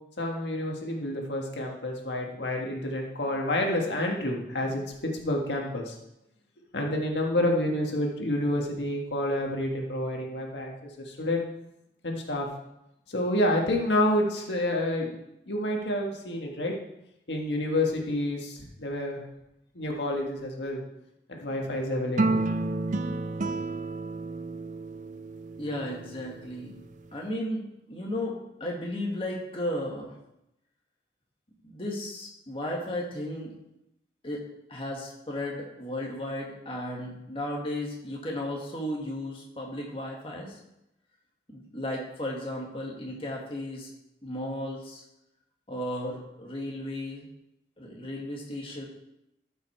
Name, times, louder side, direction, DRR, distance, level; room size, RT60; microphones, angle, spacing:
voice 1, 0.2-5.9 6.7-10.7 11.0-11.4 12.0-12.5 13.1-15.2 15.5-16.7 17.3-19.2 19.7-20.8 21.3-22.4 23.2-23.5, left 1 dB, 85° left, 0 dB, 1.7 m, -29 dB
sound 1, 22.2-26.6, right 2 dB, 45° right, 0.5 m, -31 dB
voice 2, 25.6-26.8 27.1-27.6 27.9-30.1 31.6-33.5 34.2-40.6 41.5-43.9 44.2-45.0 45.7-47.3 47.8-48.9, left 1 dB, 30° left, -2 dB, 1.8 m, -34 dB
13.0 x 5.7 x 4.5 m, 0.85 s
head